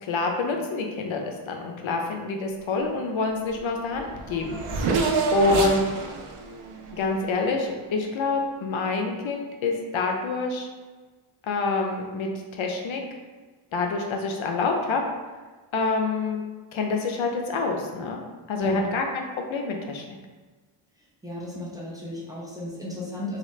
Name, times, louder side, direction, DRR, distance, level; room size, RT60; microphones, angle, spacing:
voice 1, 0.0-4.6 5.3-5.8 6.9-10.7 11.5-13.0 13.7-15.0 15.7-16.4 16.7-18.2 18.5-19.2 19.5-20.2, left 3 dB, 70° left, 2 dB, 0.6 m, -27 dB
Race car auto racing / Accelerating revving vroom, 3.6-3.7 3.9-7.9, right 4 dB, 80° right, 0.5 m, -28 dB
voice 2, 21.2-23.4, left 1 dB, 10° right, -6 dB, 0.6 m, -34 dB
2.9 x 2.3 x 3.1 m, 1.3 s
wide cardioid pair, 120°, 50 cm